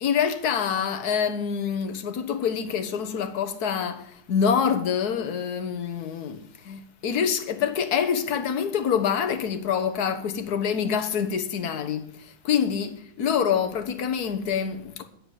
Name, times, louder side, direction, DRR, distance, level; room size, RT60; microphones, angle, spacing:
voice 1, 0.0-15.0, left 7 dB, 55° left, 1.6 m, -26 dB
10.0 x 8.8 x 9.7 m
omnidirectional pair, 2.2 m